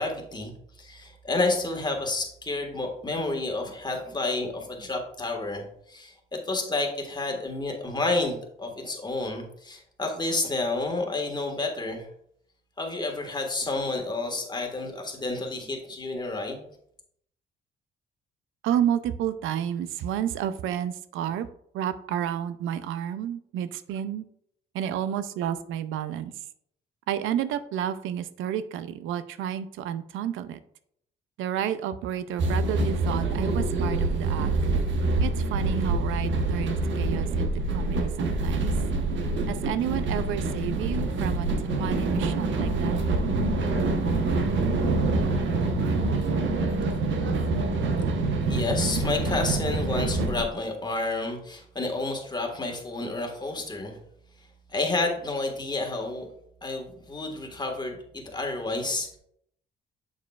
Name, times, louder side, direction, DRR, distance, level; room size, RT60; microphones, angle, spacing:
voice 1, 0.0-12.1 12.8-16.6 48.5-54.0 54.7-56.3 56.6-59.2, left 2 dB, 20° left, 2 dB, 1.6 m, -30 dB
voice 2, 18.6-21.5 21.7-24.2 24.7-26.3 27.1-30.6 31.4-34.5 35.2-38.7 39.5-41.5 41.8-43.0, right 10 dB, 85° right, 13 dB, 0.5 m, -30 dB
sound 1, 32.4-50.4, right 3 dB, 70° right, 1.1 m, -26 dB
7.2 x 6.6 x 2.4 m, 0.70 s
cardioid pair, 90°, 20 cm